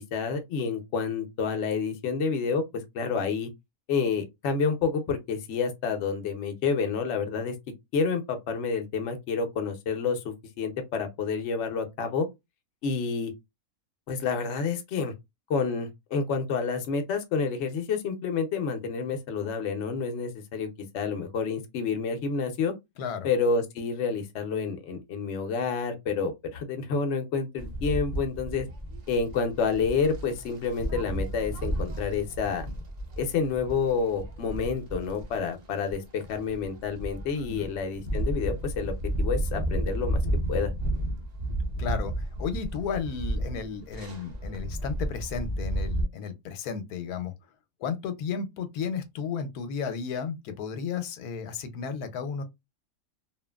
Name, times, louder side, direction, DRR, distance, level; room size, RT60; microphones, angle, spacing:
voice 1, 0.1-3.5 3.9-7.5 7.9-12.3 12.8-13.3 14.1-15.1 15.5-20.7 20.9-22.7 23.2-28.7 29.1-32.7 33.2-40.2 40.5-40.7, left 5 dB, 60° left, 0.8 m, -29 dB
voice 2, 23.0-23.3 37.5-37.6 41.8-47.3 47.8-52.4, left 6 dB, 85° left, 1.1 m, -33 dB
sound 1, 27.6-46.0, right 1 dB, 55° right, 0.4 m, -32 dB
2.8 x 2.5 x 2.2 m
omnidirectional pair, 1.6 m